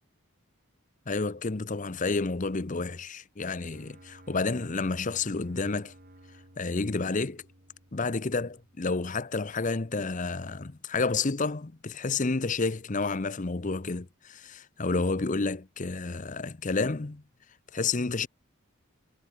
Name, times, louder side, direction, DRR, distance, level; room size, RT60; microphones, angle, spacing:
voice 1, 1.1-5.9 6.6-7.4 7.9-17.2 17.7-18.3, left 3 dB, 35° left, 0.7 m, -30 dB
sound 1, 3.7-9.7, right 1 dB, 45° right, 7.2 m, -55 dB
head